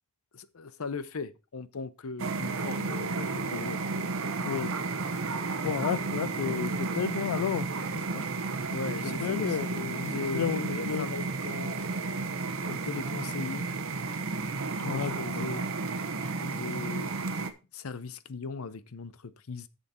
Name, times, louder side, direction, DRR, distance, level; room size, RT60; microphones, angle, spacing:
voice 1, 0.3-3.8 5.4-5.5 5.8-6.0 8.7-9.6 10.0-11.9 12.6-13.7 14.8-15.7 16.2-17.1 17.4-19.7, left 4 dB, 65° left, 0.7 m, -39 dB
sound 1, 2.2-17.5, right 3 dB, 60° right, 1.0 m, -32 dB
voice 2, 5.6-7.7 8.1-8.2 9.0-11.1 14.8-15.5, left 8 dB, 90° left, 0.3 m, -32 dB
8.3 x 7.1 x 4.4 m
head